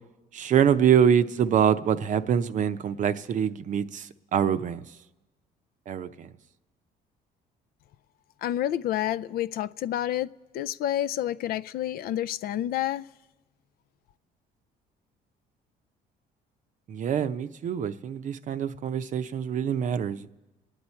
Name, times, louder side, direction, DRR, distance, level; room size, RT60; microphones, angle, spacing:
voice 1, 0.3-4.8 5.9-6.3 16.9-20.3, right 8 dB, 50° right, 0.6 m, -25 dB
voice 2, 8.4-13.1, left 12 dB, 65° left, 0.4 m, -29 dB
29.5 x 9.8 x 4.4 m
cardioid pair, 110°, 17 cm